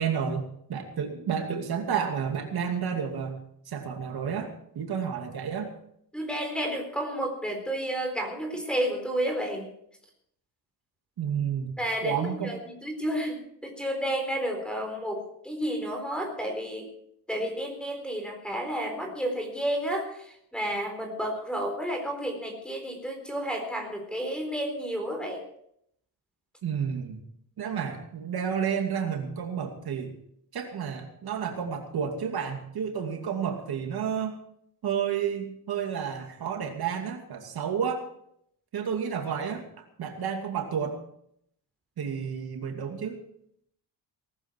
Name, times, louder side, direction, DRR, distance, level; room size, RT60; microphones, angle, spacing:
voice 1, 0.0-3.4 3.7-4.5 4.7-5.7 11.2-11.7 12.0-12.5 26.6-27.2 27.6-30.1 30.5-34.4 34.8-38.1 38.7-41.0 42.0-43.2, right 7 dB, 65° right, 3 dB, 2.6 m, -31 dB
voice 2, 6.1-9.7 11.8-16.9 17.3-25.4, equal, ahead, 3 dB, 4.1 m, -31 dB
18.5 x 14.0 x 4.6 m, 0.69 s
wide cardioid pair, 155°, 40 cm